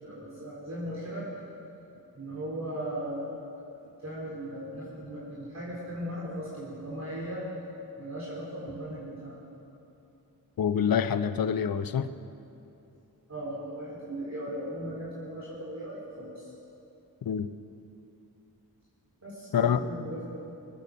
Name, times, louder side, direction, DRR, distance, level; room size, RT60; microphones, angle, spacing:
voice 1, 0.0-1.3 1.9-7.5 8.0-9.4 13.3-16.5 19.2-20.4, equal, 45° right, -8 dB, 4.1 m, -38 dB
voice 2, 10.6-12.1 17.2-17.5 19.5-19.8, left 8 dB, 60° left, 12 dB, 0.7 m, -26 dB
21.5 x 8.7 x 6.8 m, 2.8 s
cardioid pair, 65°, 39 cm